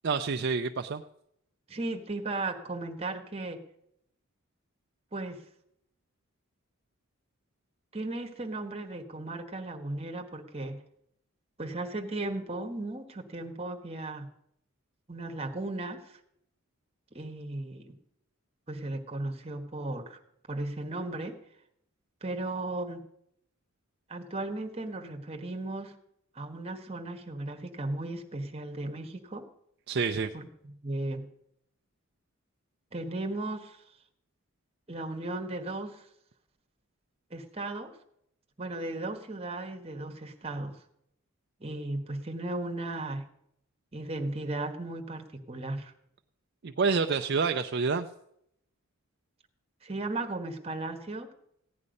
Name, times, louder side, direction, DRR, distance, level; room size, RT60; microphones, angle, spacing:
voice 1, 0.0-1.0 29.9-30.3 46.6-48.1, right 5 dB, 50° right, 6 dB, 0.5 m, -28 dB
voice 2, 1.7-3.6 5.1-5.4 7.9-10.8 11.6-14.3 15.1-16.2 17.1-18.0 18.7-20.2 20.5-21.4 22.2-23.1 24.1-26.0 26.3-29.5 30.3-30.5 30.8-31.3 32.9-33.8 34.9-36.1 37.3-37.9 38.6-40.8 41.6-43.3 43.9-45.9 49.8-51.3, right 2 dB, 30° right, 5 dB, 1.3 m, -36 dB
15.5 x 9.8 x 5.3 m, 0.75 s
head